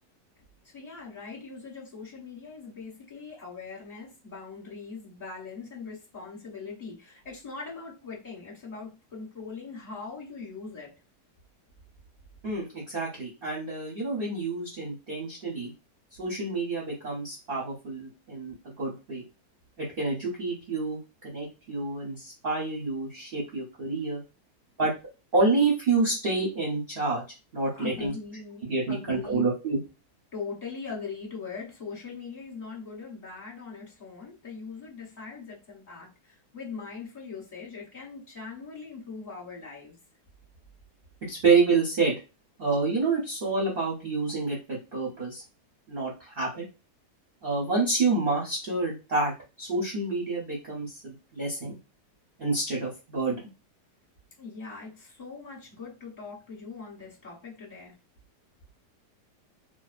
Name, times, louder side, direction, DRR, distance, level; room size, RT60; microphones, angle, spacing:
voice 1, 0.6-10.9 27.7-29.5 30.3-40.0 54.4-57.9, left 4 dB, 25° left, -5 dB, 1.0 m, -41 dB
voice 2, 12.4-15.7 16.2-19.2 19.8-24.2 24.8-24.9 25.3-27.2 27.5-28.1 28.6-29.8 41.3-42.2 42.6-45.4 45.9-46.6 47.4-49.3 49.6-51.8 52.4-53.4, right 3 dB, 45° right, -4 dB, 0.7 m, -28 dB
2.7 x 2.1 x 2.4 m, 0.28 s
omnidirectional pair, 1.8 m